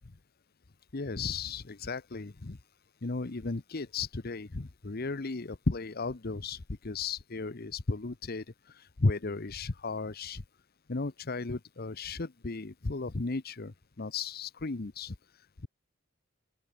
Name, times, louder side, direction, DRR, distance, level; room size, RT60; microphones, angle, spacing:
voice 1, 0.9-2.6 3.0-10.4 10.9-15.7, left 3 dB, 50° left, 0.9 m, -35 dB
open air
head